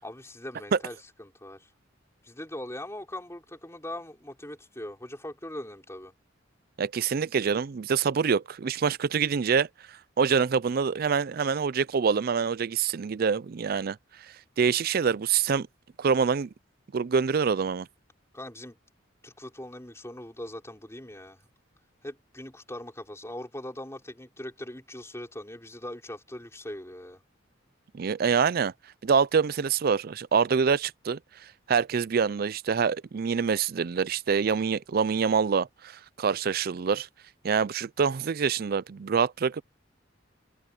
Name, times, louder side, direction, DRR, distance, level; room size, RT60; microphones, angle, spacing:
voice 1, 0.0-1.7 2.2-6.1 18.3-18.8 19.2-21.4 22.0-27.2, left 1 dB, 15° left, 4.7 m, -41 dB
voice 2, 6.8-14.0 14.6-15.7 16.0-16.5 16.9-17.9 27.9-28.7 29.0-31.2 31.7-37.1 37.4-39.6, right 6 dB, 50° right, 0.4 m, -25 dB
head